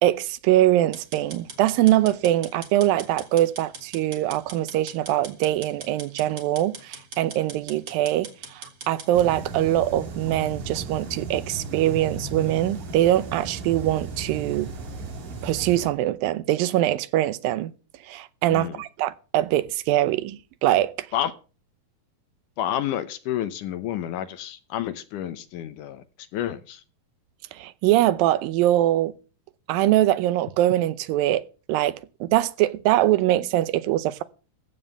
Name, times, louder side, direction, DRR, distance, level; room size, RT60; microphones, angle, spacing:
voice 1, 0.0-14.7 15.4-17.7 18.1-21.1 27.5-29.1 29.7-31.4 31.7-34.2, right 14 dB, 85° right, 2.5 m, -23 dB
sound 1, 0.9-9.1, right 4 dB, 35° right, 2.7 m, -41 dB
sound 2, 9.1-15.9, right 3 dB, 60° right, 3.5 m, -35 dB
voice 2, 18.5-18.8 21.1-21.3 22.6-26.8, left 11 dB, 75° left, 2.2 m, -30 dB
15.0 x 5.5 x 8.1 m
omnidirectional pair, 4.1 m